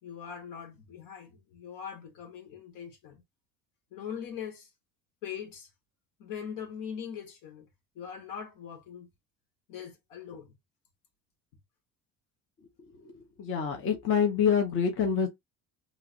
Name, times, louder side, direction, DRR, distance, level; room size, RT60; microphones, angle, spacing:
voice 1, 0.0-3.2 3.9-4.7 5.2-5.7 6.2-7.7 7.9-9.1 9.7-10.5, left 8 dB, 75° left, 1.5 m, -41 dB
voice 2, 13.0-15.3, left 7 dB, 40° left, 0.9 m, -26 dB
3.2 x 3.0 x 2.5 m
cardioid pair, 165°, 34 cm